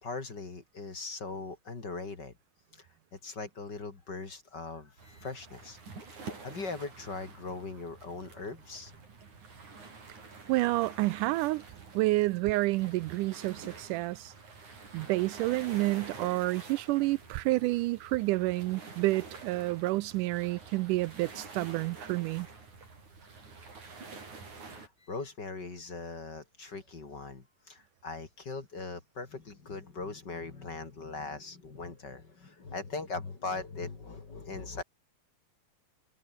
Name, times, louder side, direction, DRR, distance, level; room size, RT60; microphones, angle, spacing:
voice 1, 0.0-2.3 2.7-5.8 6.4-9.0 24.6-34.8, left 3 dB, 35° left, 3.1 m, -40 dB
sound 1, 5.0-24.9, right 4 dB, 60° right, 7.7 m, -48 dB
voice 2, 10.5-11.6 11.9-14.3 14.9-22.5, right 19 dB, 80° right, 2.0 m, -29 dB
omnidirectional pair, 3.8 m